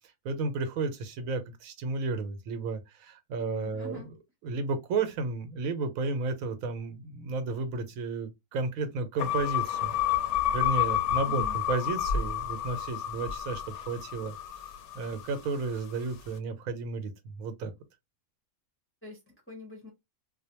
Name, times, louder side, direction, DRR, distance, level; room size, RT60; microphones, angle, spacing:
voice 1, 0.2-4.0 4.4-9.9 10.5-14.3 14.9-17.7, right 3 dB, 75° right, 1.0 m, -32 dB
voice 2, 3.4-4.1 11.2-11.6 19.0-19.9, left 2 dB, 15° left, 0.6 m, -45 dB
sound 1, 9.2-15.6, left 10 dB, 65° left, 0.8 m, -30 dB
2.5 x 2.1 x 2.8 m
omnidirectional pair, 1.5 m